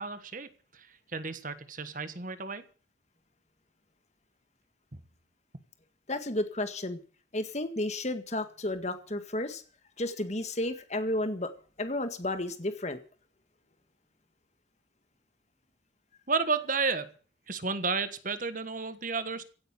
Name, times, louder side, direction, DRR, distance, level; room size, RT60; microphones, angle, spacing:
voice 1, 0.0-2.6 16.3-17.1 17.5-19.4, right 4 dB, 45° right, 1.4 m, -32 dB
voice 2, 6.1-7.0 7.3-9.6 10.0-11.5 11.8-13.0, left 1 dB, 35° left, 1.8 m, -32 dB
16.5 x 8.8 x 8.8 m
head